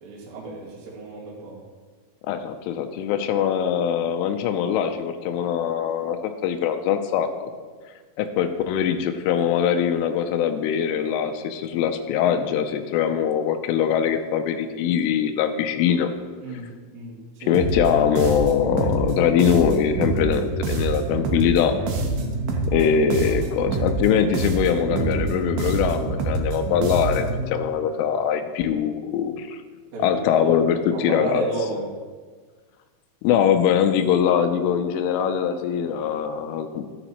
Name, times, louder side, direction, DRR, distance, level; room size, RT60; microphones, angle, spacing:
voice 1, 0.0-1.6 16.4-17.6 23.3-23.4 23.6-23.8 29.9-30.5 30.9-31.8, right 3 dB, 55° right, -5 dB, 3.3 m, -33 dB
voice 2, 2.3-7.3 8.2-16.1 17.4-21.7 22.7-29.6 30.0-31.4 33.2-36.8, left 8 dB, 85° left, 7 dB, 3.1 m, -22 dB
sound 1, 17.5-27.4, right 3 dB, 85° right, 2.1 m, -26 dB
13.0 x 9.9 x 3.0 m, 1.5 s
omnidirectional pair, 5.7 m